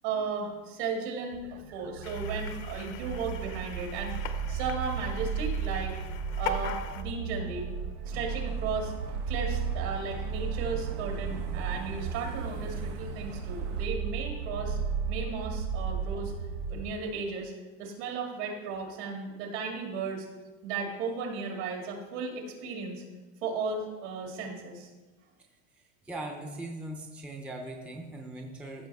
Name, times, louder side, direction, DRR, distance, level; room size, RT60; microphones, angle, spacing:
voice 1, 0.0-1.4 1.7-6.0 6.4-7.7 8.1-8.9 9.3-14.8 15.1-16.3 16.7-17.5 17.8-20.3 20.6-23.0 23.4-24.9, right 4 dB, 65° right, 1 dB, 2.3 m, -35 dB
sound 1, 1.3-16.9, right 6 dB, 50° right, 0.7 m, -34 dB
sound 2, 2.0-7.0, left 11 dB, 55° left, 0.7 m, -41 dB
sound 3, 8.0-13.9, right 3 dB, 85° right, 1.4 m, -42 dB
voice 2, 26.0-28.9, right 1 dB, 5° right, 1 dB, 0.5 m, -40 dB
14.5 x 6.0 x 3.5 m, 1.2 s
supercardioid pair, 155°, 35 cm